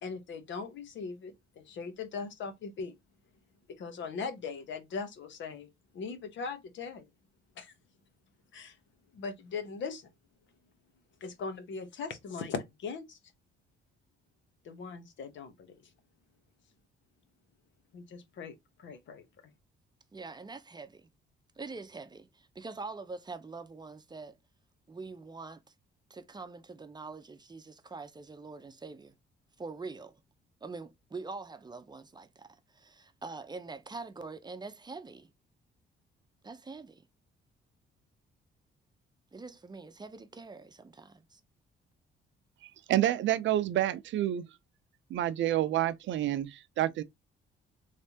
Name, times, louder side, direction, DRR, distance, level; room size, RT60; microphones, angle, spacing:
voice 1, 0.0-2.9 3.7-5.7 5.9-7.1 7.6-7.7 8.5-8.8 9.1-10.1 11.2-13.2 14.6-15.7 17.9-19.3, left 5 dB, 70° left, 1.1 m, -40 dB
voice 2, 20.1-21.1 21.6-24.4 24.9-25.6 26.1-29.1 29.6-30.2 30.6-32.5 32.7-35.3 36.4-37.0 39.3-41.4, right 4 dB, 20° right, 0.6 m, -44 dB
voice 3, 42.9-44.4 45.1-47.0, right 13 dB, 70° right, 0.5 m, -28 dB
3.3 x 3.2 x 2.7 m
cardioid pair, 90°, 20 cm